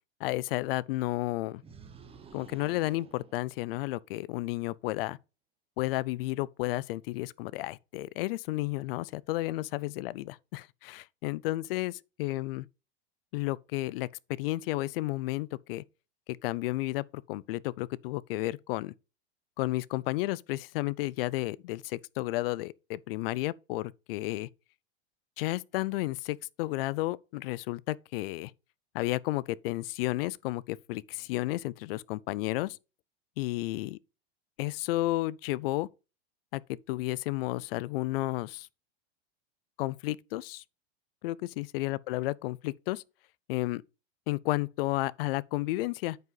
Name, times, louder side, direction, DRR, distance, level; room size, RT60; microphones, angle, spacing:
voice 1, 0.2-1.6 2.3-5.2 5.8-12.7 13.3-15.8 16.4-18.9 19.6-24.5 25.4-28.5 28.9-32.8 33.4-34.0 34.6-35.9 36.5-38.7 39.8-40.6 41.2-43.0 43.5-43.8 44.3-46.2, left 18 dB, 60° left, 0.5 m, -32 dB
sound 1, 1.6-4.1, right 6 dB, 15° right, 1.3 m, -52 dB
9.1 x 5.4 x 4.0 m
supercardioid pair, 130°, 33 cm